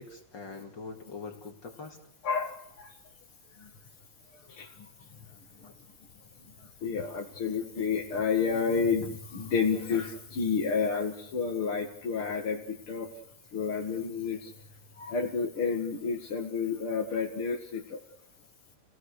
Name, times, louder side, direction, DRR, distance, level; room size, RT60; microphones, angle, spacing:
voice 1, 0.0-2.0 5.6-5.7, left 4 dB, 55° left, 3 dB, 2.9 m, -43 dB
voice 2, 2.2-2.9 4.6-4.7 6.8-12.6 12.9-13.1 13.5-14.5 15.0-18.0, left 5 dB, 75° left, 0 dB, 2.9 m, -30 dB
29.5 x 18.0 x 6.6 m, 0.71 s
omnidirectional pair, 2.4 m